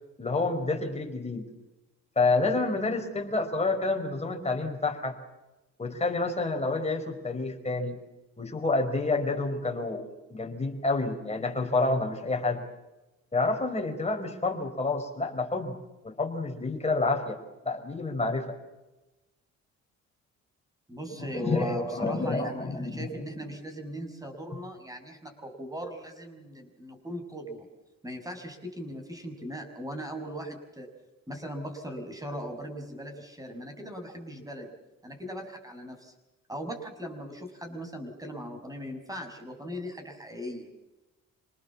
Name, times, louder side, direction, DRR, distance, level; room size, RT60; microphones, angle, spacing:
voice 1, 0.2-1.5 2.1-5.2 5.8-8.0 8.4-12.6 13.3-15.8 16.0-17.4 17.6-18.6 21.3-23.4, left 3 dB, 20° left, 3 dB, 4.9 m, -29 dB
voice 2, 20.9-27.7 28.0-30.9 31.3-34.7 35.0-36.1 36.5-40.7, equal, 10° right, 5 dB, 6.2 m, -38 dB
27.5 x 19.5 x 7.3 m, 1.0 s
cardioid pair, 90°, 30 cm